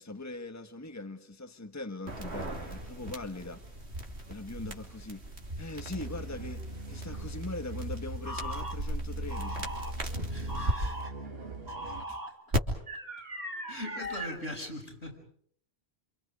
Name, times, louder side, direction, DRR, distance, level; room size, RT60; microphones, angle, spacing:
voice 1, 0.0-3.7 4.3-9.7 12.1-12.2, left 2 dB, 15° left, 1.4 m, -41 dB
sound 1, 2.1-10.7 12.5-12.6, right 1 dB, 85° right, 3.2 m, -37 dB
sound 2, 5.8-12.1, right 1 dB, 60° right, 2.4 m, -40 dB
sound 3, 8.2-8.8 9.3-9.9 10.5-11.1 11.7-12.3 12.9-14.4, equal, 40° right, 3.2 m, -39 dB
voice 2, 10.3-11.1 11.8-12.0 12.3-12.4 13.7-15.2, left 1 dB, 90° left, 6.2 m, -41 dB
28.5 x 27.0 x 5.1 m
omnidirectional pair, 1.1 m